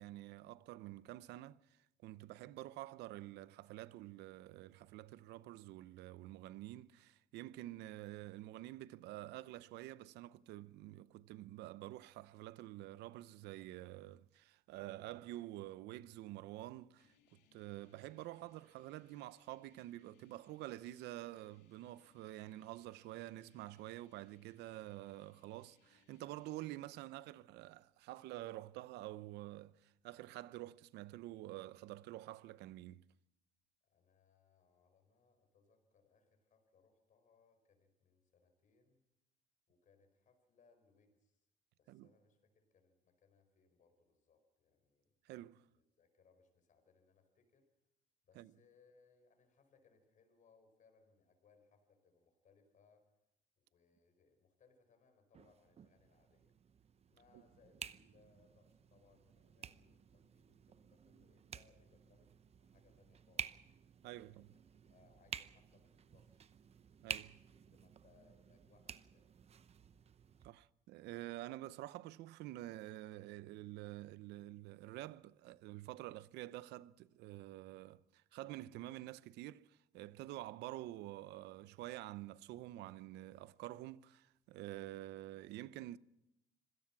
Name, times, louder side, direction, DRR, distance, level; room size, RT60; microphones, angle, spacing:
voice 1, 0.0-17.1 17.5-33.0 41.9-42.1 45.2-45.6 48.4-48.5 64.0-64.5 67.0-67.4 70.4-86.0, right 16 dB, 85° right, 0.7 m, -48 dB
sound 1, 17.0-26.8, left 8 dB, 80° left, 2.9 m, -75 dB
voice 2, 33.8-39.0 39.7-41.5 41.8-45.2 45.7-47.7 48.2-53.1 53.6-56.6 57.1-63.7 64.2-66.5 67.2-69.3, left 5 dB, 50° left, 5.4 m, -71 dB
sound 2, 55.3-70.5, right 8 dB, 40° right, 0.8 m, -52 dB
26.0 x 17.5 x 6.0 m
cardioid pair, 110°, 17 cm